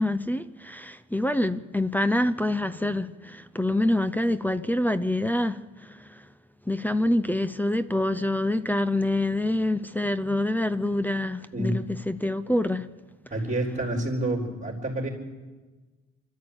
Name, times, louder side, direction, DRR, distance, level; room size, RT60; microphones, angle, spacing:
voice 1, 0.0-6.3 6.7-12.9, left 1 dB, 5° left, 0.6 m, -26 dB
voice 2, 11.5-11.8 13.3-15.1, right 1 dB, 25° right, 4.1 m, -28 dB
24.0 x 13.5 x 8.9 m
cardioid pair, 90°, 30 cm